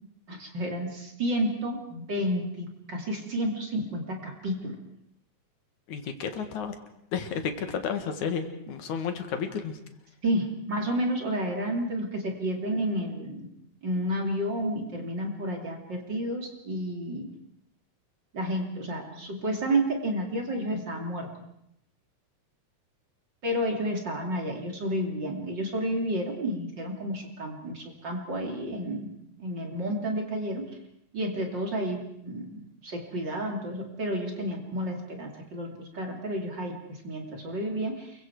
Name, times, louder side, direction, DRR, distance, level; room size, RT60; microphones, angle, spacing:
voice 1, 0.3-4.8 10.2-13.5 13.8-17.3 18.3-21.3 23.4-29.1 29.4-30.7 31.1-38.3, right 1 dB, 35° right, 2 dB, 3.2 m, -31 dB
voice 2, 5.9-6.8 7.1-9.8, left 6 dB, 75° left, 7 dB, 3.1 m, -32 dB
29.0 x 23.0 x 4.7 m, 0.76 s
omnidirectional pair, 3.5 m